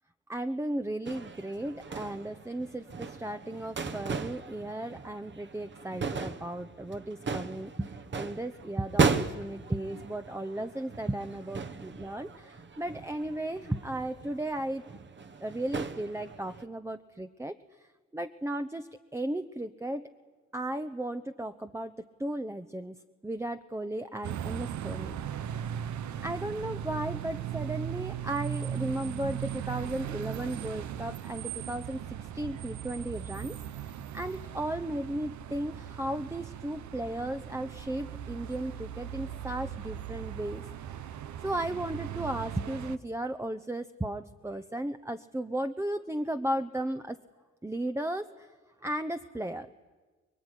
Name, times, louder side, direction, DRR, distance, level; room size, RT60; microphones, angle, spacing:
voice 1, 0.3-14.8 15.4-17.5 18.1-20.1 20.5-21.9 22.2-23.0 23.2-25.6 26.2-40.7 41.4-47.2 47.6-48.5 48.8-49.7, right 1 dB, 10° right, 8 dB, 0.9 m, -35 dB
sound 1, 1.1-16.6, right 4 dB, 40° right, 1.4 m, -36 dB
sound 2, 24.2-43.0, right 9 dB, 70° right, 1.0 m, -38 dB
25.0 x 22.0 x 9.9 m, 1.3 s
cardioid pair, 90°, 30 cm